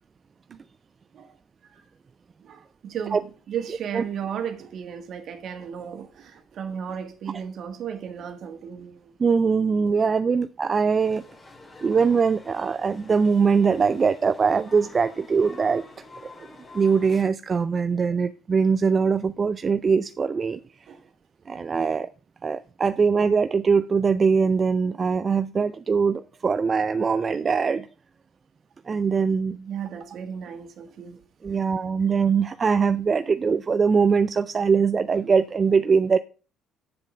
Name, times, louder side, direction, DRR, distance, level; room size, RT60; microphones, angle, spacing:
voice 1, 2.4-9.0 20.9-21.0 29.5-31.2 31.5-31.6, right 8 dB, 60° right, 1.6 m, -35 dB
voice 2, 9.2-11.2 11.8-15.9 16.4-16.5 16.7-20.9 21.5-22.1 22.4-27.9 28.9-29.5 31.4-36.2, right 5 dB, 35° right, 0.4 m, -22 dB
sound 1, 11.0-17.2, left 2 dB, 30° left, 2.3 m, -47 dB
7.8 x 7.2 x 5.0 m
supercardioid pair, 75°, 0 cm